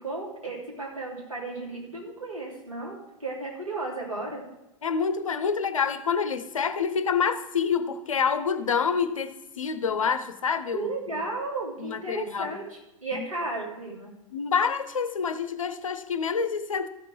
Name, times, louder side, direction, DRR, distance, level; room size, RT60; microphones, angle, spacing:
voice 1, 0.0-4.4 10.7-14.1, right 3 dB, 90° right, -4 dB, 3.0 m, -34 dB
voice 2, 4.8-11.2 11.8-12.6 13.1-13.2 14.3-16.9, left 6 dB, 75° left, 11 dB, 0.8 m, -27 dB
13.5 x 5.9 x 4.7 m, 0.93 s
figure-of-eight pair, 90°, 17 cm